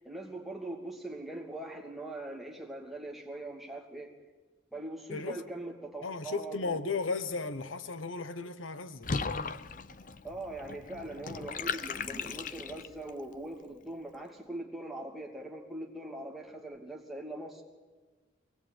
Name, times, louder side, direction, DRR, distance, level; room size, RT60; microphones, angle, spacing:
voice 1, 0.0-4.1 4.7-6.8 10.2-17.6, right 1 dB, ahead, 2.7 m, -41 dB
voice 2, 5.1-5.4 6.0-9.1, left 4 dB, 85° left, 1.1 m, -35 dB
Water / Bathtub (filling or washing), 9.0-13.1, left 4 dB, 40° left, 0.7 m, -37 dB
23.5 x 18.5 x 9.1 m
head